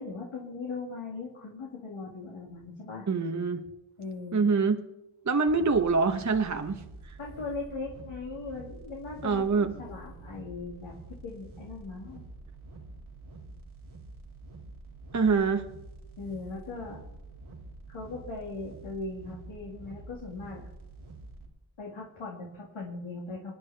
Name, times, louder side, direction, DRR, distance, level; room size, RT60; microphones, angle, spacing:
voice 1, 0.0-3.1 4.0-4.4 7.2-12.2 16.2-17.0 17.9-20.7 21.8-23.5, left 3 dB, 90° left, -2 dB, 2.1 m, -39 dB
voice 2, 3.1-3.6 4.3-4.8 5.3-6.8 7.1-7.2 9.2-9.7 15.1-15.7, right 4 dB, 35° right, 6 dB, 0.9 m, -25 dB
sound 1, 5.5-21.5, right 2 dB, 85° right, 2.2 m, -47 dB
26.5 x 9.5 x 3.4 m, 0.95 s
cardioid pair, 50°, 47 cm